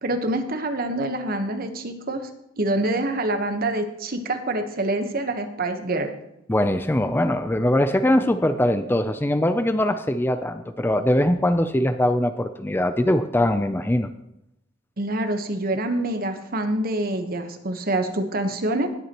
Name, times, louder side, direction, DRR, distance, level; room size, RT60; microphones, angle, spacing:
voice 1, 0.0-2.3 2.6-6.1 15.0-18.9, right 1 dB, 50° right, 7 dB, 1.2 m, -26 dB
voice 2, 6.5-14.1, left 1 dB, 10° left, 10 dB, 0.4 m, -22 dB
19.5 x 8.3 x 3.0 m, 0.83 s
head